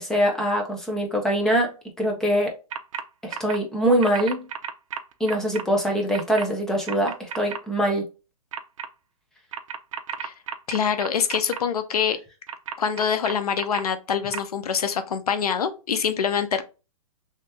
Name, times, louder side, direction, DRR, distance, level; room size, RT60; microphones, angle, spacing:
voice 1, 0.0-2.5 3.2-4.5 5.2-8.1, equal, 5° left, 0.4 m, -23 dB
sound 1, 2.7-3.0 3.3-3.6 4.0-5.6 6.1-6.4 6.9-7.6 8.5-8.9 9.5-11.6 12.5-13.8 14.3-14.4, right 8 dB, 60° right, 0.5 m, -33 dB
voice 2, 10.7-12.2 12.8-16.6, left 7 dB, 90° left, 0.7 m, -25 dB
3.2 x 2.8 x 3.3 m
hypercardioid pair, 165°, 19 cm